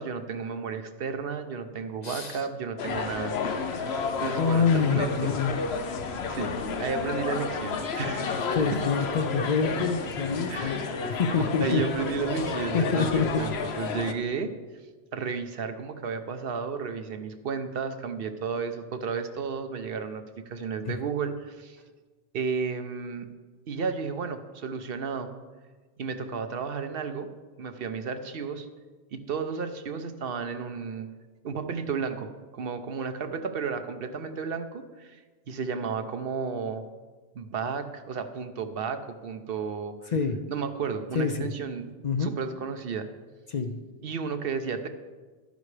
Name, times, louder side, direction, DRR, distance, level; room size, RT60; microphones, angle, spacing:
voice 1, 0.0-3.4 3.7-3.9 4.2-5.3 6.3-8.8 10.5-10.8 11.6-13.1 13.4-14.5 15.1-21.8 22.3-23.3 23.7-25.3 26.0-27.3 27.6-28.7 29.1-31.1 31.4-36.8 37.3-40.1 40.5-41.9 42.2-43.1 44.0-44.9, right 5 dB, 65° right, 8 dB, 0.9 m, -33 dB
voice 2, 2.0-2.4 4.3-5.5 8.2-11.8 12.7-13.4 20.8-21.0 40.1-40.4 41.1-41.5 42.0-42.3 43.5-43.8, left 5 dB, 50° left, 7 dB, 0.6 m, -26 dB
sound 1, 2.8-14.1, left 5 dB, 80° left, 1.0 m, -31 dB
12.0 x 10.5 x 3.2 m, 1.4 s
omnidirectional pair, 1.1 m